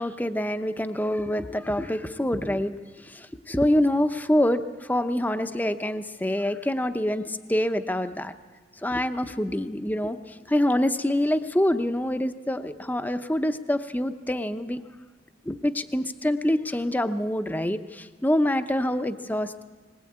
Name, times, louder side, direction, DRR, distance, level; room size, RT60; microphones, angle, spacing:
voice 1, 0.0-2.7 3.0-8.3 8.8-14.8 15.5-19.6, left 1 dB, 10° left, 10 dB, 0.7 m, -26 dB
20.5 x 20.5 x 8.7 m, 1.4 s
head